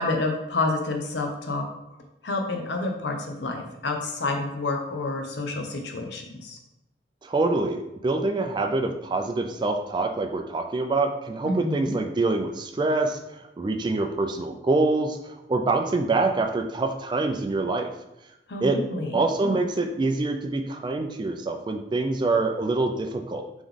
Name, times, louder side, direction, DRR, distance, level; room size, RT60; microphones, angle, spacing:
voice 1, 0.0-1.6 2.2-6.6 11.4-12.0 18.5-19.6, left 2 dB, 80° left, 3 dB, 0.7 m, -29 dB
voice 2, 7.2-13.2 13.6-17.9 18.6-18.8 19.1-23.5, right 3 dB, 25° right, 5 dB, 0.3 m, -25 dB
3.7 x 3.0 x 3.5 m, 0.90 s
head